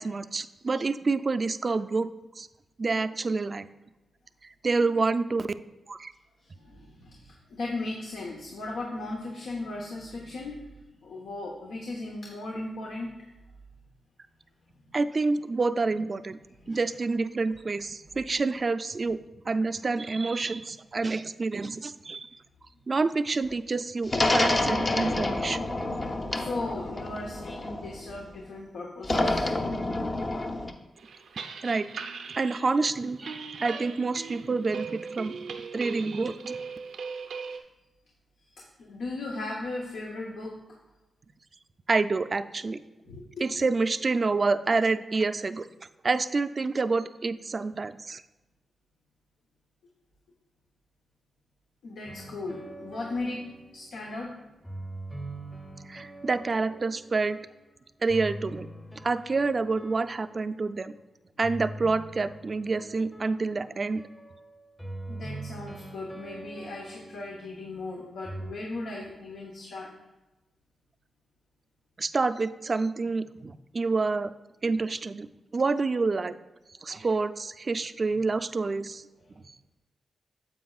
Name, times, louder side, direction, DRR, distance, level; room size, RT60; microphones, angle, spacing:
voice 1, 0.0-2.1 2.4-2.5 2.8-3.7 4.4-5.5 5.9-6.1 14.9-16.4 16.7-19.2 19.5-22.3 22.9-25.7 31.6-31.8 32.3-35.3 35.7-36.6 41.9-42.8 43.4-45.7 46.0-48.2 55.8-57.4 58.0-58.7 59.0-60.9 61.4-64.0 72.0-74.3 74.6-76.4 76.8-79.0 79.5-79.6, right 3 dB, 45° right, 11 dB, 0.4 m, -28 dB
voice 2, 6.4-10.6 11.0-13.3 14.7-14.8 16.6-16.8 26.3-29.6 38.6-40.6 43.0-43.2 43.5-43.6 51.8-54.3 65.1-69.9, left 2 dB, 85° left, -1 dB, 1.0 m, -37 dB
sound 1, 24.1-28.2 29.0-30.7, left 2 dB, 45° left, 0.8 m, -28 dB
sound 2, 31.0-37.6, right 5 dB, 85° right, 0.6 m, -39 dB
sound 3, 52.1-54.0 54.6-57.6 58.1-60.7 61.4-67.7 68.2-68.5, right 1 dB, 10° left, 0.8 m, -43 dB
9.3 x 7.7 x 2.4 m, 1.0 s
cardioid pair, 65°, 0 cm